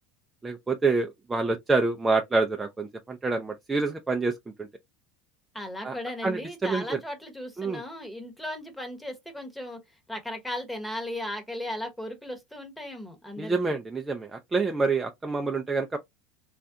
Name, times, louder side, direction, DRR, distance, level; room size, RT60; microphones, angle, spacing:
voice 1, 0.4-4.7 5.8-5.9 6.2-7.0 7.6-7.8 13.4-16.0, right 3 dB, 15° right, 0.4 m, -27 dB
voice 2, 5.5-9.8 10.1-13.8, left 1 dB, 5° left, 1.0 m, -36 dB
3.2 x 2.4 x 2.6 m
supercardioid pair, 110°, 0 cm